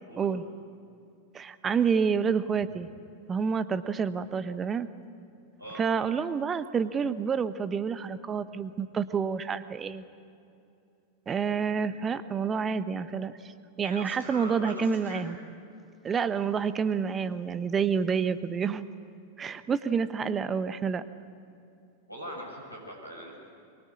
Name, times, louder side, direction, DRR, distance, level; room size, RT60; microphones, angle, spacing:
voice 1, 1.3-2.9 3.3-4.9 5.8-10.0 11.3-13.5 13.8-15.4 16.0-18.8 19.4-21.0, right 6 dB, 20° right, 13 dB, 1.0 m, -28 dB
voice 2, 13.8-15.3 22.1-23.4, equal, 90° left, -2 dB, 6.2 m, -41 dB
23.5 x 23.0 x 8.5 m, 2.6 s
figure-of-eight pair, 90°, 0 cm